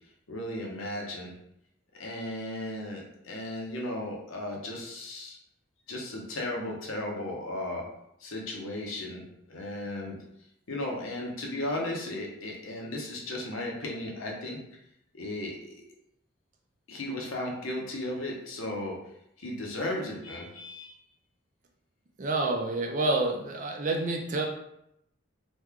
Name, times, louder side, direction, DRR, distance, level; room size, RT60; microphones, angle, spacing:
voice 1, 0.3-1.3 1.9-5.4 5.9-7.8 8.2-9.2 9.5-10.2 10.7-14.6 15.1-15.8 16.9-19.0 19.4-21.0, left 1 dB, 80° left, -1 dB, 0.8 m, -35 dB
voice 2, 22.2-24.5, right 2 dB, 40° right, 2 dB, 0.4 m, -28 dB
3.1 x 2.2 x 3.5 m, 0.77 s
head